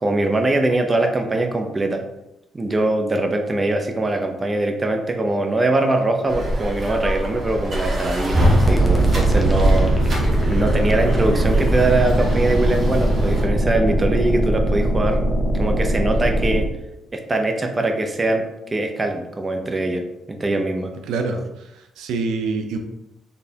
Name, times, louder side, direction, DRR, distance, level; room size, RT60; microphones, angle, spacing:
voice 1, 0.0-2.0 2.5-9.9 10.4-15.2 15.5-16.7 17.1-18.4 18.7-20.0 20.3-20.9, right 2 dB, 25° right, 4 dB, 0.6 m, -22 dB
sound 1, 6.3-13.5, equal, 45° right, 1.4 m, -23 dB
sound 2, 8.6-16.6, right 1 dB, 20° left, 0.8 m, -20 dB
voice 2, 21.1-22.8, right 4 dB, 85° right, 5 dB, 0.4 m, -26 dB
4.2 x 3.2 x 2.8 m, 0.89 s
cardioid pair, 90°, 0 cm